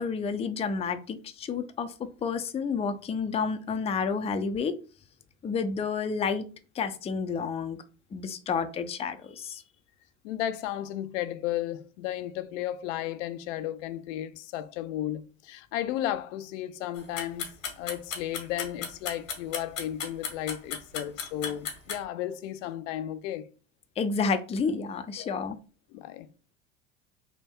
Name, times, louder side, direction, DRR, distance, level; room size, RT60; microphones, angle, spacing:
voice 1, 0.0-4.7 5.4-6.5 6.7-7.8 8.1-9.6 24.0-25.6, left 5 dB, 15° left, 0.4 m, -30 dB
voice 2, 10.2-23.5 25.2-25.5 25.9-26.3, left 12 dB, 75° left, 0.5 m, -34 dB
sound 1, 17.0-22.0, left 6 dB, 90° left, 1.2 m, -34 dB
3.4 x 2.2 x 4.4 m
hypercardioid pair, 85°, 38 cm